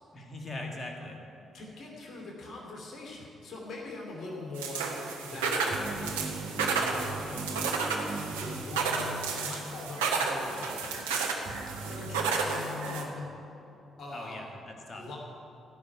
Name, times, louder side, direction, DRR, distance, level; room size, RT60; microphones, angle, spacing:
voice 1, 0.1-1.2 14.1-15.1, left 2 dB, 35° left, 1 dB, 2.3 m, -41 dB
voice 2, 1.5-4.9 5.2-6.1 6.5-7.7 8.4-11.2 11.9-13.3 14.0-14.4 14.9-15.2, left 2 dB, 50° left, -2 dB, 2.9 m, -42 dB
sound 1, 4.5-13.0, right 4 dB, 75° right, 1.1 m, -32 dB
sound 2, 5.7-9.5 9.7-9.8 11.4-12.3, right 3 dB, 50° right, 1.5 m, -40 dB
15.5 x 6.0 x 9.2 m, 3.0 s
figure-of-eight pair, 40°, 0 cm